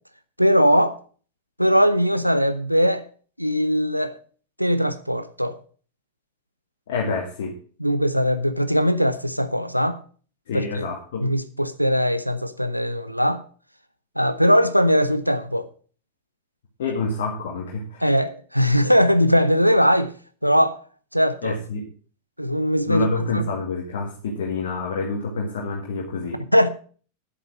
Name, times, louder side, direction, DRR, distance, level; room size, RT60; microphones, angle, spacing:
voice 1, 0.4-1.0 1.6-3.0 3.4-4.2 4.6-5.6 7.8-10.0 10.5-10.8 11.2-13.4 14.2-15.7 18.0-20.1 20.4-20.8 21.1-21.6 22.4-23.1 23.3-23.4 26.5-26.7, equal, 90° right, 0.8 m, -20 dB
voice 2, 6.9-7.6 10.5-11.3 16.8-18.0 21.4-21.9 22.9-26.4, left 3 dB, 60° left, 2.1 m, -27 dB
9.9 x 8.0 x 6.4 m
figure-of-eight pair, 90°, 0 cm